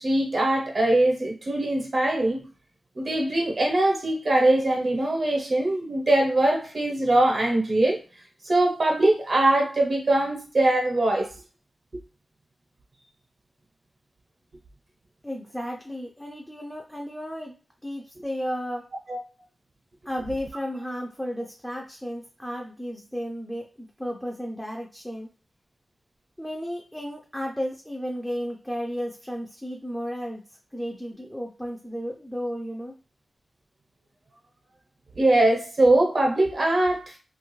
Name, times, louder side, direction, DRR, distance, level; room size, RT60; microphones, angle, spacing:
voice 1, 0.0-2.4 2.9-8.0 8.4-11.3 19.1-19.2 35.2-37.2, right 1 dB, 50° right, 0.8 m, -22 dB
voice 2, 15.2-17.5 17.8-18.9 20.1-25.3 26.4-30.4 30.7-32.9, equal, 5° left, 0.4 m, -33 dB
2.9 x 2.3 x 3.1 m
wide cardioid pair, 125°, 0 cm